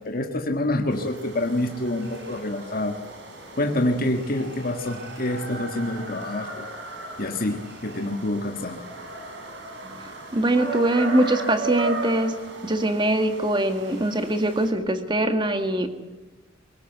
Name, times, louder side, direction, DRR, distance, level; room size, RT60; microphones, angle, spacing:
voice 1, 0.0-3.0 3.6-8.9, left 1 dB, 50° left, 4 dB, 1.7 m, -27 dB
sound 1, 0.9-14.7, right 2 dB, 65° right, 5.5 m, -36 dB
voice 2, 9.8-12.3 12.6-15.9, right 1 dB, 25° right, 7 dB, 1.9 m, -23 dB
23.0 x 18.5 x 8.0 m, 1.2 s
head